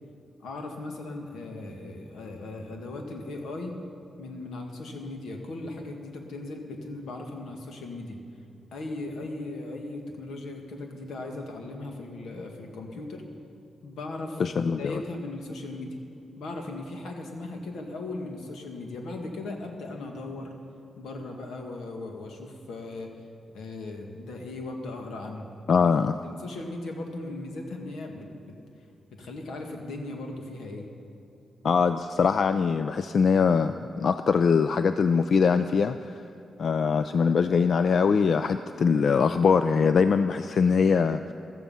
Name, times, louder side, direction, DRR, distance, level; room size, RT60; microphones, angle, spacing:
voice 1, 0.4-3.7 4.2-8.2 8.7-13.3 13.8-14.4 14.7-16.0 16.4-20.5 21.0-23.1 23.5-25.5 26.2-28.6 29.1-30.9, left 2 dB, 90° left, 2 dB, 1.9 m, -38 dB
voice 2, 14.4-15.0 25.7-26.2 31.6-36.2 36.6-41.3, left 5 dB, 60° left, 11 dB, 0.4 m, -22 dB
15.0 x 14.0 x 5.6 m, 2.8 s
cardioid pair, 100°, 0 cm